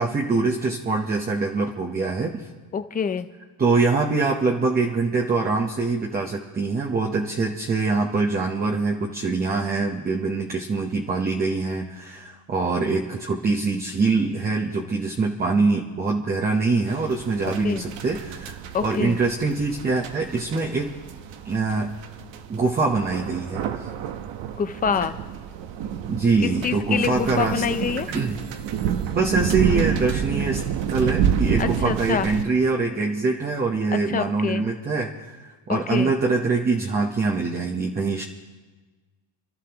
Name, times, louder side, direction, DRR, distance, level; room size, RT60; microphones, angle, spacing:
voice 1, 0.0-2.4 3.6-20.9 21.4-21.9 22.5-23.9 26.1-27.6 28.1-28.4 29.1-30.6 30.9-38.2, right 3 dB, 20° right, 0 dB, 0.9 m, -24 dB
voice 2, 2.7-3.3 17.6-17.8 18.7-19.2 24.6-25.1 26.4-28.1 31.6-32.3 34.1-34.6 35.7-36.1, left 7 dB, 20° left, 10 dB, 0.4 m, -26 dB
sound 1, 16.9-32.4, right 8 dB, 70° right, 1.1 m, -29 dB
28.5 x 13.0 x 3.0 m, 1.3 s
cardioid pair, 165°, 45 cm